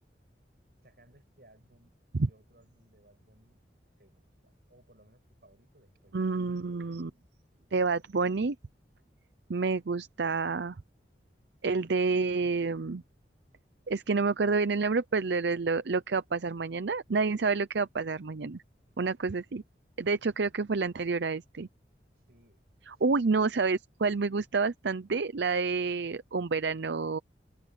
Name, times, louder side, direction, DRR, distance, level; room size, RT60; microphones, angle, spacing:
voice 1, 0.8-2.0 2.3-3.6 4.0-6.3 22.3-22.6 22.9-23.5, right 1 dB, 55° right, 6.8 m, -62 dB
voice 2, 6.1-7.1 7.7-8.6 9.5-10.8 11.6-13.0 13.9-18.6 19.0-19.6 20.0-21.7 22.9-27.2, right 4 dB, 75° right, 0.6 m, -29 dB
head